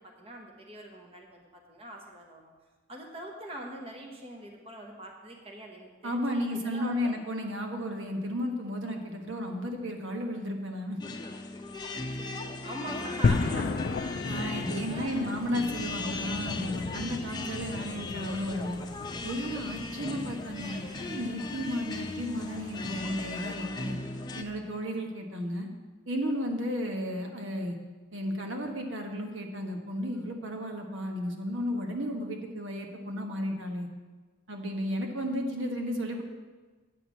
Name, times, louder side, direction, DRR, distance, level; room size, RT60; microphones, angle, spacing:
voice 1, 0.0-2.5 2.9-7.2 11.9-14.2 14.5-15.4 19.6-19.9, right 1 dB, 30° right, 1 dB, 1.2 m, -44 dB
voice 2, 6.0-11.0 14.3-18.8 19.2-24.0 24.3-25.7 26.1-27.8 28.1-33.9 34.5-36.2, equal, 75° right, 3 dB, 1.3 m, -33 dB
sound 1, 11.0-24.4, left 2 dB, 20° left, 0.7 m, -38 dB
sound 2, 13.2-23.5, left 4 dB, 50° left, 0.4 m, -35 dB
9.1 x 5.8 x 8.3 m, 1.3 s
head